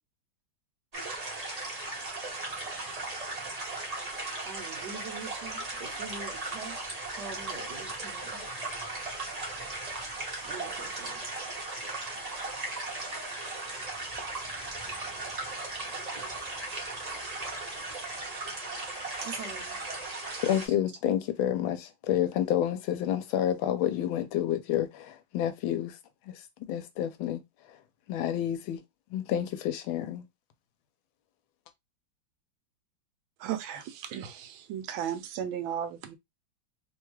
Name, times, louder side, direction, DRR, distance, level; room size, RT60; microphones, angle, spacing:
sound 1, 0.9-20.7, right 2 dB, 40° right, 0.5 m, -37 dB
voice 1, 4.0-8.4 10.4-11.3 19.2-19.9, right 4 dB, 65° right, 1.2 m, -44 dB
voice 2, 20.4-26.0 26.3-26.4 26.7-27.4 28.1-28.8 29.1-30.2, left 11 dB, 90° left, 1.4 m, -29 dB
voice 3, 33.4-36.2, right 9 dB, 85° right, 1.4 m, -35 dB
3.4 x 2.3 x 3.0 m
omnidirectional pair, 2.1 m